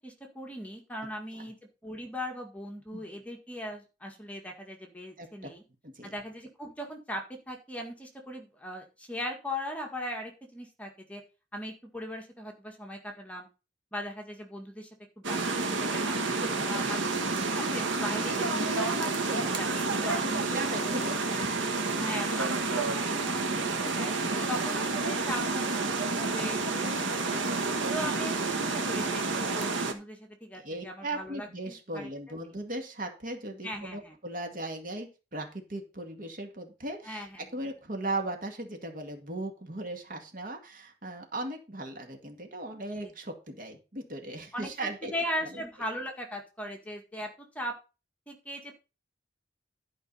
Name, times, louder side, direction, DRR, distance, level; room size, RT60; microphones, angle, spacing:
voice 1, 0.0-1.6 1.8-5.6 6.0-11.2 11.5-13.5 13.9-14.9 15.2-16.2 16.7-17.2 17.5-21.3 22.0-24.1 24.5-27.4 27.9-32.1 33.6-34.1 37.1-37.5 44.5-47.3 47.6-47.7 48.3-48.7, equal, 10° left, 1 dB, 1.8 m, -39 dB
voice 2, 5.2-5.5 5.8-6.1 16.4-16.9 19.3-19.9 20.2-22.1 27.9-28.3 30.5-37.3 37.5-45.1 45.5-45.6, right 2 dB, 45° right, 4 dB, 2.0 m, -38 dB
sound 1, 15.2-29.9, right 3 dB, 80° right, 1.5 m, -29 dB
12.0 x 5.2 x 5.5 m, 0.31 s
head